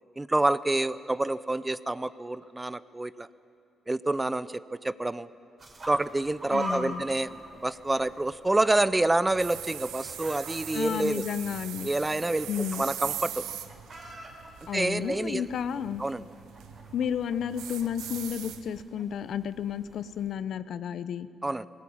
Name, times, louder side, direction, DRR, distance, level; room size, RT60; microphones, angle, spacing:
voice 1, 0.2-3.3 3.9-5.3 5.9-11.2 11.8-13.5 14.7-15.5 16.0-16.2 21.4-21.7, right 2 dB, 15° right, 16 dB, 0.5 m, -28 dB
sound 1, 5.6-20.3, right 1 dB, 35° right, 3.7 m, -45 dB
voice 2, 6.5-7.0 10.7-11.9 12.5-12.8 14.7-16.0 16.9-21.3, left 8 dB, 65° left, 14 dB, 0.7 m, -32 dB
sound 2, 9.3-18.8, right 10 dB, 85° right, 0.9 m, -41 dB
19.5 x 17.0 x 8.7 m, 2.7 s
cardioid pair, 90°, 0 cm